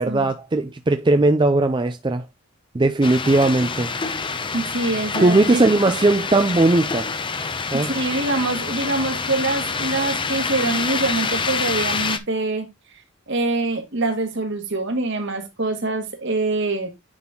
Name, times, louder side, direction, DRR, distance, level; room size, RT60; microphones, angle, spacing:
voice 1, 0.0-2.2 2.7-3.9 5.2-7.1 7.7-7.9, right 2 dB, 20° right, 0.4 m, -18 dB
sound 1, 3.0-12.2, left 4 dB, 25° left, 0.7 m, -27 dB
voice 2, 4.5-5.7 7.8-12.7 13.3-16.9, right 2 dB, 55° right, 1.8 m, -24 dB
9.6 x 4.2 x 3.6 m
head